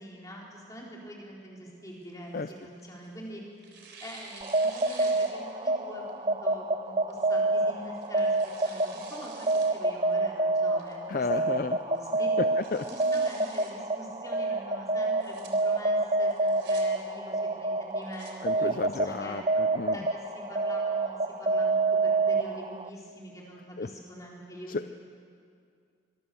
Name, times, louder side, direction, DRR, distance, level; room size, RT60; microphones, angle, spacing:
voice 1, 0.0-11.6 11.8-12.3 12.9-19.4 19.9-24.9, equal, 15° left, -3 dB, 4.3 m, -45 dB
Tearing, 1.8-3.2 3.6-5.7 6.1-6.2 7.1-7.4 7.9-9.7 10.1-10.2 10.8-11.2 11.6-11.7 12.0-12.1 12.4-13.7 15.0-15.5 16.3-16.8 17.8-18.3, right 5 dB, 60° right, 3.7 m, -49 dB
sound 1, 4.4-22.9, right 2 dB, 25° right, 0.6 m, -28 dB
voice 2, 11.1-11.8 12.4-12.9 18.4-20.0 23.8-23.9 24.7-24.9, left 3 dB, 45° left, 11 dB, 0.5 m, -32 dB
24.0 x 21.5 x 7.0 m, 2.3 s
head